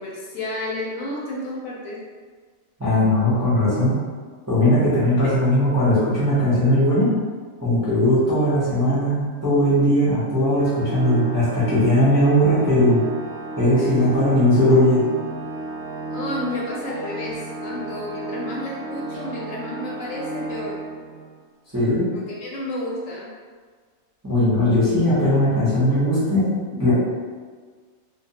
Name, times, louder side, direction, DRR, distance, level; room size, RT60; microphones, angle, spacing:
voice 1, 0.0-2.0 5.2-5.3 13.8-14.5 16.1-20.8 22.1-23.3, left 1 dB, 75° left, -4 dB, 0.9 m, -31 dB
voice 2, 2.8-4.0 4.5-7.1 7.6-13.0 13.6-15.0 21.7-22.0 24.2-26.4 26.8-26.9, left 1 dB, 20° right, -11 dB, 0.5 m, -18 dB
Organ, 10.6-21.4, right 2 dB, 65° right, 0.7 m, -33 dB
2.2 x 2.2 x 2.8 m, 1.5 s
omnidirectional pair, 1.5 m